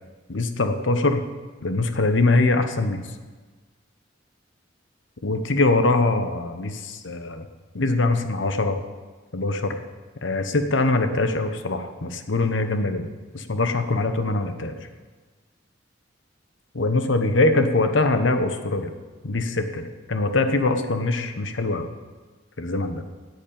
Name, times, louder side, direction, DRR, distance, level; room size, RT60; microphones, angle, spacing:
voice 1, 0.3-1.2 1.6-3.0 5.2-7.5 7.7-8.8 9.3-9.8 10.2-13.1 13.3-14.8 16.7-18.9 19.2-21.9 22.6-23.0, left 2 dB, 70° left, 8 dB, 0.9 m, -23 dB
8.7 x 8.5 x 8.6 m, 1.4 s
head